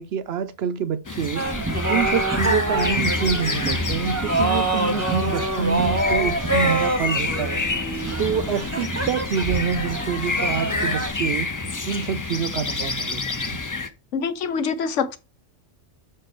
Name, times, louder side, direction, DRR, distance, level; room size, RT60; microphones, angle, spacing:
voice 1, 0.0-1.4 1.9-7.6 8.2-11.5 11.9-13.6, right 7 dB, 65° right, 0.8 m, -27 dB
sound 1, 1.1-13.9, left 3 dB, 25° left, 0.4 m, -28 dB
sound 2, 1.4-11.1, right 2 dB, 15° right, 0.8 m, -26 dB
voice 2, 14.1-15.2, left 6 dB, 85° left, 1.2 m, -25 dB
6.4 x 4.7 x 4.5 m
omnidirectional pair, 1.2 m